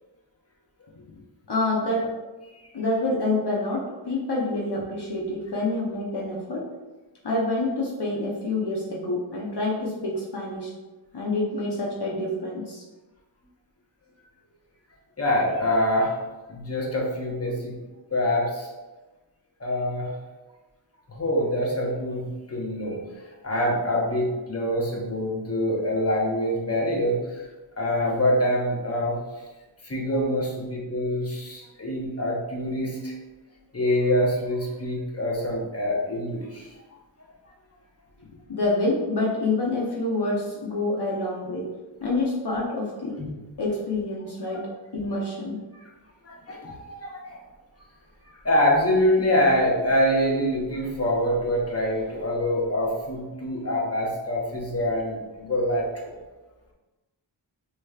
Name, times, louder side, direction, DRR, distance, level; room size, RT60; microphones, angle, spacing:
voice 1, 1.5-2.1 2.7-6.6 7.2-10.7 11.1-12.8 38.5-41.7 42.0-43.2 43.6-44.7 44.9-45.6, left 2 dB, 55° left, -4 dB, 0.9 m, -27 dB
voice 2, 15.2-16.2 16.5-17.7 18.1-18.7 19.6-20.2 21.1-23.0 23.4-27.4 27.8-29.2 29.8-33.1 33.7-36.7 43.2-43.3 44.5-44.6 46.2-47.4 48.4-56.1, left 1 dB, 30° left, -2 dB, 1.1 m, -25 dB
6.5 x 3.0 x 2.4 m, 1.2 s
wide cardioid pair, 45°, 48 cm